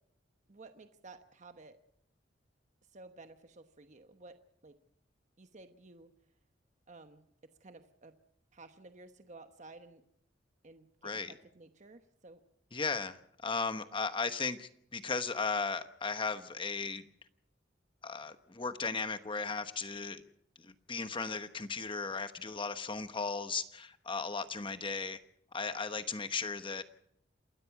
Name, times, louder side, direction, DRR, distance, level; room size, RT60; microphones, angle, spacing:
voice 1, 0.5-1.8 2.9-4.4 4.6-4.8 5.4-6.1 6.9-7.2 7.6-8.1 8.5-10.0 10.6-12.4, right 3 dB, 40° right, 8 dB, 1.1 m, -54 dB
voice 2, 11.0-11.3 12.7-17.0 18.0-20.2 20.6-25.2 25.5-26.8, left 4 dB, 30° left, 10 dB, 1.1 m, -36 dB
28.0 x 13.0 x 7.2 m, 0.70 s
head